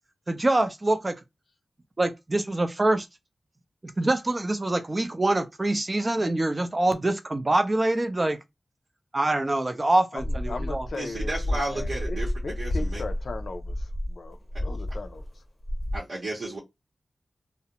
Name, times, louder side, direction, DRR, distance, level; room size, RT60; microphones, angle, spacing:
voice 1, 0.3-1.2 2.0-3.1 3.8-8.4 9.1-10.9, right 2 dB, 30° right, 0.5 m, -25 dB
voice 2, 10.1-12.2 12.4-15.2, left 3 dB, 70° left, 0.4 m, -38 dB
sound 1, 10.2-15.3 15.6-16.0, left 1 dB, 35° left, 0.7 m, -31 dB
voice 3, 11.0-13.0 15.9-16.6, right 2 dB, 75° right, 0.8 m, -33 dB
2.4 x 2.0 x 2.8 m
wide cardioid pair, 65°, 0 cm